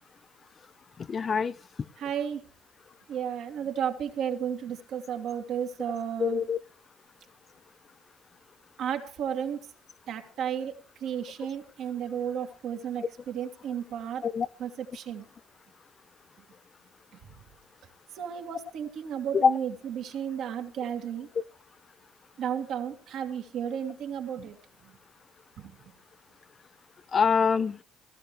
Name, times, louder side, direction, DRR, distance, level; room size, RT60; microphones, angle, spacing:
voice 1, 1.1-1.5 6.2-6.6 13.0-13.1 14.2-14.5 19.3-19.6 27.1-27.8, left 6 dB, 45° left, 0.6 m, -24 dB
voice 2, 2.0-2.4 3.1-6.4 8.8-9.6 10.1-10.7 11.0-14.3 14.6-15.2 18.1-21.3 22.4-24.6 24.8-24.9 25.6-25.7, right 8 dB, 65° right, 2.5 m, -33 dB
17.5 x 14.5 x 3.3 m
hypercardioid pair, 55°, 0 cm